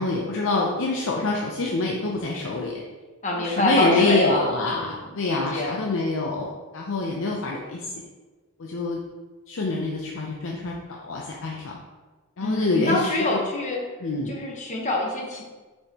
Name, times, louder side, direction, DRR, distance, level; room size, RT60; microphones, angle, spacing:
voice 1, 0.0-2.8 3.4-7.9 8.6-9.0 9.5-11.8 12.4-13.4 14.0-14.3, left 3 dB, 60° left, -1 dB, 0.6 m, -26 dB
voice 2, 3.2-5.8 12.4-13.8 14.3-15.4, left 1 dB, 35° left, -1 dB, 1.1 m, -26 dB
6.7 x 5.5 x 2.9 m, 1.3 s
head